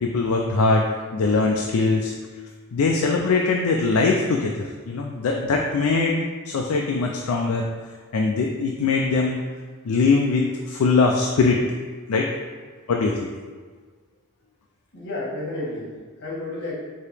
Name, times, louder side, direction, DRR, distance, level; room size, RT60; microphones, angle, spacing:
voice 1, 0.0-2.1 2.7-6.2 6.5-7.7 8.1-9.4 9.9-11.7 12.1-12.3 12.9-13.3, left 4 dB, 70° left, 1 dB, 0.4 m, -21 dB
voice 2, 14.9-16.7, left 2 dB, 55° left, -5 dB, 1.2 m, -32 dB
4.7 x 2.9 x 3.3 m, 1.5 s
head